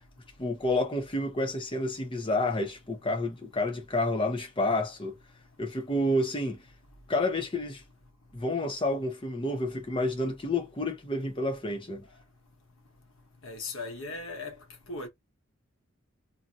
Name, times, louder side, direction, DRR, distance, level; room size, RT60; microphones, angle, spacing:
voice 1, 0.4-5.1 5.6-6.6 7.1-7.8 8.3-12.0, left 1 dB, 25° left, 0.7 m, -29 dB
voice 2, 13.4-14.6 14.9-15.1, left 3 dB, 80° left, 1.0 m, -37 dB
2.7 x 2.6 x 2.6 m
head